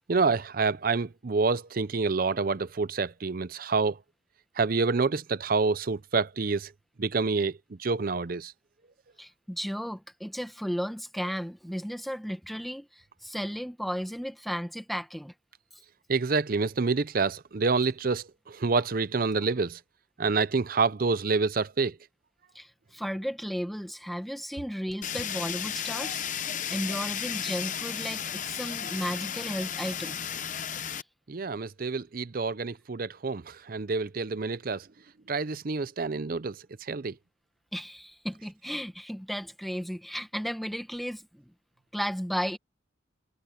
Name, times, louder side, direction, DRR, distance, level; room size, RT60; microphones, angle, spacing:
voice 1, 0.1-4.0 4.6-6.7 7.0-8.5 16.1-19.8 20.2-21.9 31.3-34.8 35.3-36.5 36.9-37.1, right 4 dB, 45° right, 0.6 m, -27 dB
voice 2, 9.2-12.9 13.2-15.3 22.5-26.3 26.7-30.2 30.9-31.0 37.7-41.5 41.9-42.6, equal, ahead, 1.4 m, -34 dB
Fire, 25.0-31.0, left 9 dB, 40° left, 0.8 m, -34 dB
head